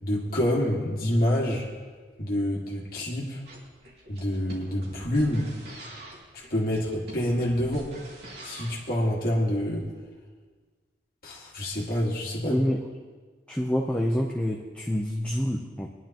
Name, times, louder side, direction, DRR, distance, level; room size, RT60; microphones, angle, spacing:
voice 1, 0.0-1.7 2.2-3.4 4.1-5.5 6.3-7.9 8.4-9.9 11.2-12.6, left 1 dB, 50° left, -3 dB, 1.9 m, -27 dB
sound 1, 3.5-8.9, right 1 dB, 65° right, 2.7 m, -45 dB
voice 2, 12.5-12.8 13.5-15.9, equal, 5° left, -2 dB, 0.6 m, -27 dB
21.0 x 11.0 x 3.0 m, 1.5 s
head